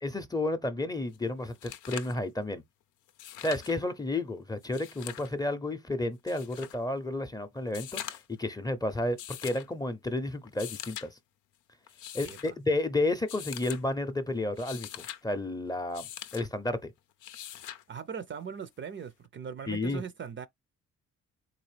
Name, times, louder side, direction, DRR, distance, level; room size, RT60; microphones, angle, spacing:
voice 1, 0.0-2.6 3.4-11.2 12.1-16.1 16.3-16.9 19.7-20.0, left 2 dB, 15° left, 0.6 m, -32 dB
sound 1, 1.1-1.2 1.5-2.2 3.1-3.8 4.6-5.3 6.3-6.8 7.7-8.4 9.2-9.7 10.5-11.1 11.9-12.5 13.3-13.8 14.4-15.2 15.9-16.5 17.2-17.8 19.2-19.3, left 11 dB, 85° left, 0.6 m, -42 dB
voice 2, 12.2-12.5 17.9-20.5, right 7 dB, 40° right, 0.5 m, -40 dB
4.0 x 2.5 x 3.2 m
cardioid pair, 90°, 30 cm